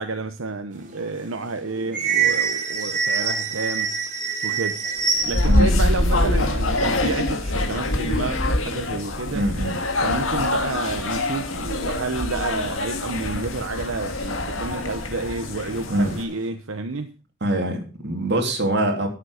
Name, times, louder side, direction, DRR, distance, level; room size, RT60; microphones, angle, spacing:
voice 1, 0.0-4.0 4.4-4.8 5.3-9.4 10.0-17.1, right 3 dB, 85° right, 0.9 m, -30 dB
sound 1, 0.7-5.7 6.0-6.1 6.3-7.7 8.2-8.3 8.5-9.1 9.8-9.9 10.5-11.4 11.9-12.0 13.1-13.2 13.7-15.1 15.4-16.5, right 6 dB, 40° right, 3.1 m, -27 dB
sound 2, 5.1-16.2, left 2 dB, 85° left, 1.8 m, -24 dB
voice 2, 5.5-5.9 9.3-9.8 15.9-16.2 17.4-19.1, right 1 dB, 60° right, 3.1 m, -23 dB
13.0 x 7.5 x 6.4 m
head